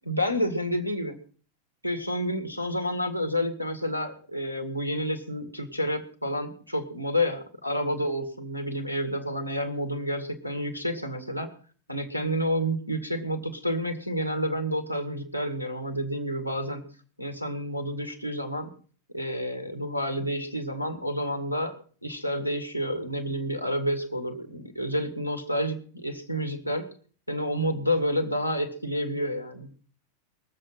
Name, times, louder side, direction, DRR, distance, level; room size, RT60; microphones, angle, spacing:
voice 1, 0.0-1.2 1.8-11.5 11.9-16.8 17.2-18.7 19.1-26.9 27.3-29.7, equal, 90° right, 10 dB, 2.0 m, -29 dB
21.5 x 7.6 x 5.6 m, 0.42 s
figure-of-eight pair, 90°, 0 cm